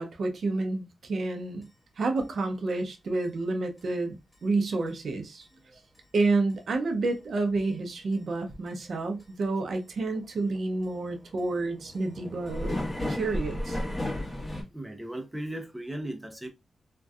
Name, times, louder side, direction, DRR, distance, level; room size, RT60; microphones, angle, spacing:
voice 1, 0.0-1.7 2.0-4.1 4.4-5.4 6.1-12.8 13.1-13.8, right 3 dB, 70° right, 0.5 m, -29 dB
sound 1, 1.6-1.7 2.2-2.3 2.7-2.8 3.2-3.3 3.8-3.9 4.3-4.4 4.9-5.0 5.4-5.5 6.0-6.1 6.5-6.6 7.0-7.1 7.6-7.7 8.1-8.2 8.7-8.8 9.2-9.5 9.7-9.8 10.1-14.6, left 1 dB, 25° left, 1.0 m, -34 dB
voice 2, 5.5-5.8 14.7-16.5, right 1 dB, 10° right, 0.5 m, -37 dB
2.6 x 2.2 x 2.3 m
cardioid pair, 85°, 0 cm